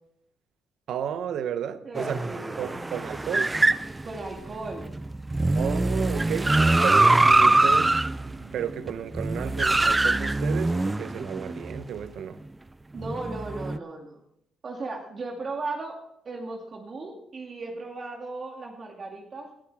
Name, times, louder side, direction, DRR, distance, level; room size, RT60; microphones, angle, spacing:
voice 1, 0.9-2.3 2.6-3.5 5.5-8.0 8.3-12.4, right 8 dB, 75° right, 0.8 m, -33 dB
voice 2, 1.8-2.6 4.0-4.9 12.9-14.2 14.6-16.0 16.2-19.5, right 3 dB, 45° right, 2.3 m, -36 dB
sound 1, 1.9-11.9 13.0-13.8, right 2 dB, 15° right, 0.4 m, -23 dB
19.5 x 11.5 x 3.5 m
cardioid pair, 90°, 0 cm